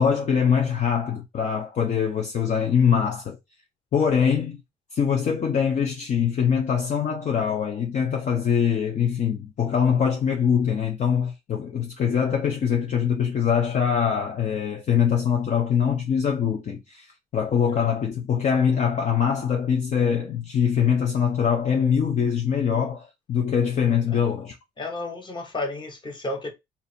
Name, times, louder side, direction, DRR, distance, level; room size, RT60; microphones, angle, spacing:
voice 1, 0.0-3.4 3.9-4.6 4.9-24.5, left 7 dB, 45° left, 0.8 m, -23 dB
voice 2, 24.8-26.5, left 2 dB, 25° left, 1.2 m, -32 dB
2.8 x 2.7 x 4.3 m
cardioid pair, 110°, 17 cm